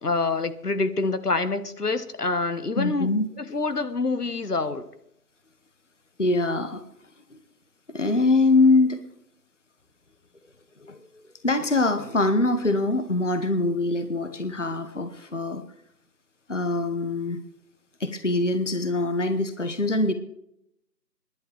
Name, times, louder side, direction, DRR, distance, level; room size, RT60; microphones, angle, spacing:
voice 1, 0.0-4.9, left 3 dB, 65° left, 12 dB, 1.2 m, -26 dB
voice 2, 2.8-3.3 6.2-6.8 7.9-9.0 10.8-11.0 11.4-15.6 16.5-17.4 18.0-20.1, left 2 dB, 45° left, 9 dB, 1.0 m, -23 dB
26.0 x 11.0 x 3.4 m, 0.78 s
figure-of-eight pair, 180°, 49 cm